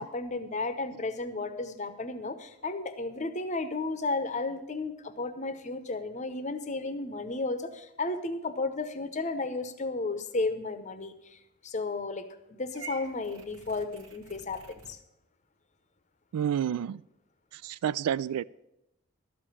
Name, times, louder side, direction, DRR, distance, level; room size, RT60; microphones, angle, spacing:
voice 1, 0.0-11.4 11.6-12.3 12.6-15.0, left 3 dB, 30° left, 0.7 m, -33 dB
Purr / Meow, 12.7-15.0, right 4 dB, 70° right, 1.1 m, -48 dB
voice 2, 16.3-17.0 17.5-18.4, right 9 dB, 90° right, 0.3 m, -29 dB
12.5 x 5.1 x 8.6 m
head